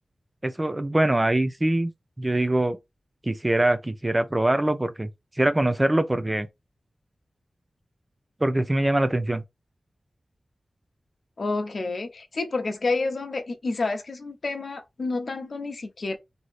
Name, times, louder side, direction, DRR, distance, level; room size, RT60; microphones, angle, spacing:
voice 1, 0.4-1.9 2.2-2.8 3.2-5.1 5.4-6.5 8.4-9.4, right 1 dB, 20° right, 0.6 m, -23 dB
voice 2, 11.4-16.2, left 3 dB, 60° left, 0.8 m, -29 dB
3.2 x 2.7 x 4.0 m
wide cardioid pair, 95°, 0 cm